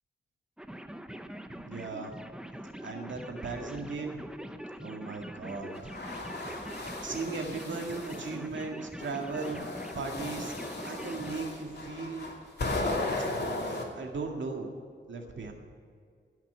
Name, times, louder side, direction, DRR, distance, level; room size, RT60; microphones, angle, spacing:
sound 1, 0.6-11.4, right 1 dB, 5° right, 0.7 m, -43 dB
voice 1, 1.5-2.1 2.8-4.3 4.8-5.9 7.0-9.6 9.9-10.5 10.8-12.3 13.6-14.8 15.1-15.5, right 4 dB, 80° right, 2 dB, 2.0 m, -37 dB
sound 2, 5.7-8.3 9.0-13.8, left 2 dB, 60° left, 2.6 m, -36 dB
17.0 x 6.0 x 9.2 m, 2.1 s
wide cardioid pair, 120°, 19 cm